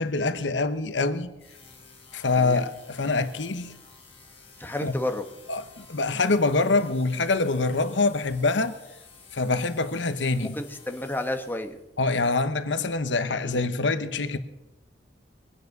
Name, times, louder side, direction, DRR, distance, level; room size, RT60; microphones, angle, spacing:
voice 1, 0.0-1.3 2.1-3.7 4.8-4.9 5.5-8.8 9.3-10.5 12.0-14.4, left 3 dB, 85° left, 1.0 m, -25 dB
sound 1, 1.4-11.9, left 5 dB, 35° left, 3.6 m, -52 dB
voice 2, 2.4-2.7 4.6-5.3 10.4-11.8 13.4-13.6, left 1 dB, 10° left, 1.3 m, -31 dB
22.5 x 9.6 x 6.6 m
head